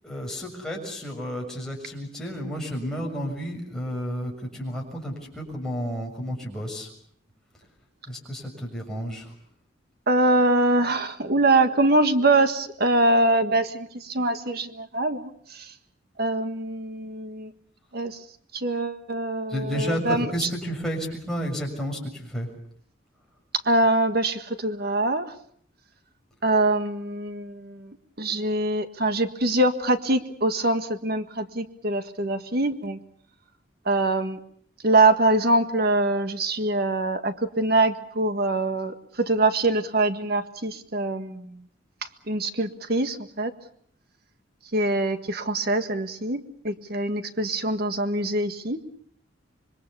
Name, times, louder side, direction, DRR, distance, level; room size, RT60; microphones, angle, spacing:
voice 1, 0.0-6.9 8.1-9.3 19.5-22.5, equal, 5° left, -2 dB, 6.9 m, -31 dB
voice 2, 10.1-15.7 16.2-17.5 17.9-18.2 18.5-20.3 23.6-25.3 26.4-27.9 28.2-33.0 33.8-34.4 34.8-41.6 42.3-43.5 44.7-48.8, right 2 dB, 55° right, 8 dB, 1.7 m, -24 dB
26.5 x 23.5 x 7.0 m, 0.65 s
head